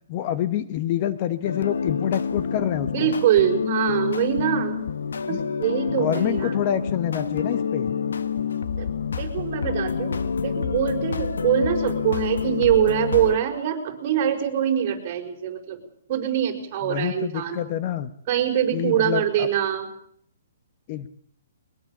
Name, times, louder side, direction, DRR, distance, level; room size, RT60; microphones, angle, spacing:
voice 1, 0.1-3.1 5.3-5.4 6.0-7.9 16.8-18.1 18.7-19.5 20.9-21.1, left 11 dB, 35° left, 11 dB, 1.1 m, -27 dB
sound 1, 1.4-13.4, left 6 dB, 85° left, 1.6 m, -27 dB
voice 2, 2.9-4.8 5.3-6.5 8.8-8.9 9.2-15.8 16.1-17.6 18.3-19.9, right 10 dB, 35° right, 2 dB, 5.3 m, -24 dB
22.0 x 21.5 x 7.2 m, 0.64 s
hypercardioid pair, 160°, 0 cm